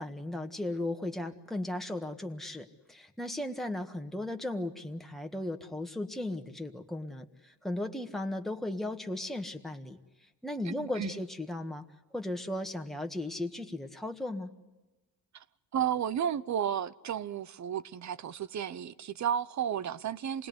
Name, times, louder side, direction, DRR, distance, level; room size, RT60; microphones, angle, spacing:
voice 1, 0.0-10.0 10.4-11.8 12.1-14.5, left 1 dB, ahead, 1.6 m, -36 dB
voice 2, 10.7-11.1 15.3-15.4 15.7-20.5, right 9 dB, 50° right, 0.8 m, -33 dB
26.5 x 20.5 x 9.5 m
cardioid pair, 100°, 37 cm